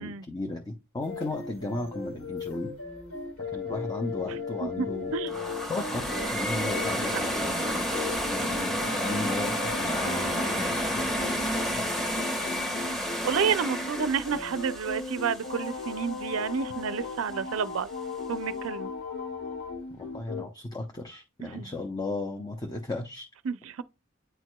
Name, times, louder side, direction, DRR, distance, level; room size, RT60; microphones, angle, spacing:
voice 1, 0.0-2.7 3.5-5.1 5.7-7.9 8.3-11.9 20.0-23.3, left 2 dB, 20° left, 0.6 m, -35 dB
sound 1, 1.0-20.4, left 4 dB, 80° left, 4.0 m, -37 dB
voice 2, 4.3-4.9 5.1-5.3 7.1-7.2 13.2-17.9 18.3-18.9 21.4-21.7 23.4-23.8, right 6 dB, 65° right, 0.4 m, -30 dB
sound 2, 5.3-16.3, equal, ahead, 1.4 m, -31 dB
9.1 x 4.6 x 2.2 m
head